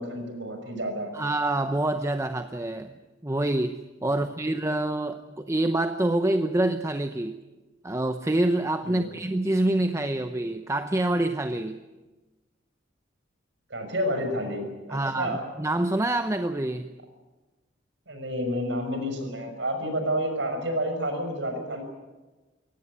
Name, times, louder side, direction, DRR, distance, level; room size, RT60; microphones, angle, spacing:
voice 1, 0.0-1.1 4.1-4.3 8.8-9.1 13.7-15.4 18.1-21.8, equal, 70° right, 6 dB, 6.0 m, -30 dB
voice 2, 1.1-3.0 3.2-7.4 7.8-11.8 14.9-16.9, right 1 dB, 15° right, 8 dB, 0.8 m, -26 dB
23.5 x 17.5 x 9.7 m, 1.2 s
head